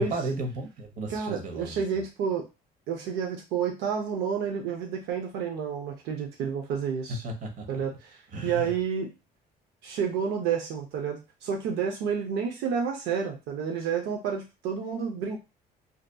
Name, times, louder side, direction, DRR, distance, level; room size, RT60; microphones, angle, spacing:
voice 1, 0.0-1.8 7.2-7.8 8.3-8.7, right 2 dB, 50° right, 3 dB, 0.8 m, -34 dB
voice 2, 1.1-2.4 2.9-7.2 7.7-9.1 9.8-15.4, right 6 dB, 85° right, 2 dB, 0.5 m, -30 dB
2.6 x 2.4 x 2.2 m, 0.28 s
cardioid pair, 110°, 17 cm